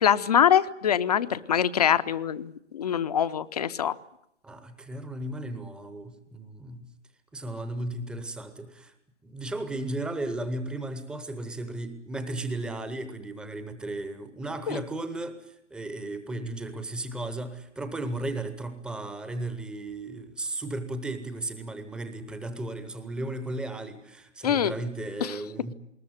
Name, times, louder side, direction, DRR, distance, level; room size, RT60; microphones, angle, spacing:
voice 1, 0.0-3.9 14.7-14.8 24.4-24.7 25.2-25.3, left 9 dB, 35° left, 15 dB, 0.8 m, -24 dB
voice 2, 4.4-6.9 7.3-8.9 9.2-25.7, right 2 dB, 5° right, 10 dB, 0.9 m, -35 dB
20.5 x 19.5 x 9.3 m, 0.78 s
figure-of-eight pair, 130°, 35 cm